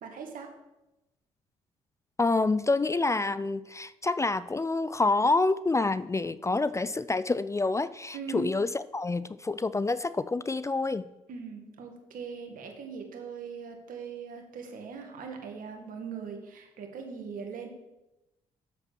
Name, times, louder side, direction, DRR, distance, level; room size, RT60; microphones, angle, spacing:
voice 1, 0.0-0.6 8.1-8.6 11.3-17.7, right 5 dB, 65° right, 4 dB, 1.9 m, -40 dB
voice 2, 2.2-11.1, left 3 dB, 20° left, 16 dB, 0.4 m, -27 dB
7.7 x 7.3 x 6.0 m, 0.97 s
hypercardioid pair, 55°, 15 cm